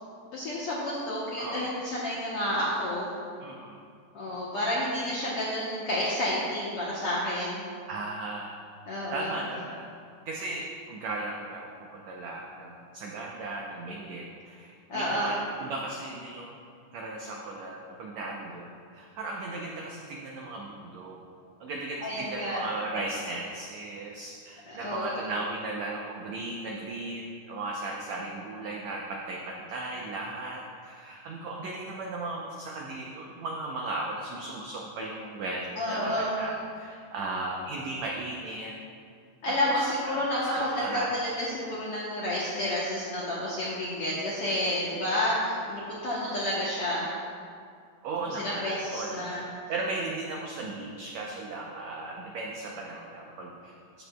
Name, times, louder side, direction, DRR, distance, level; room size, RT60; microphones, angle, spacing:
voice 1, 0.3-3.1 4.1-7.6 8.9-9.3 14.9-15.4 22.0-22.6 24.7-25.3 35.8-36.4 39.4-47.2 48.3-49.4, left 1 dB, 70° left, -7 dB, 1.4 m, -30 dB
voice 2, 1.4-1.8 3.4-3.8 7.9-8.5 9.1-9.9 10.3-16.6 16.9-21.2 21.6-38.7 39.5-41.1 48.0-54.0, right 2 dB, 90° right, -1 dB, 1.5 m, -36 dB
14.0 x 7.9 x 2.3 m, 2.2 s
omnidirectional pair, 4.1 m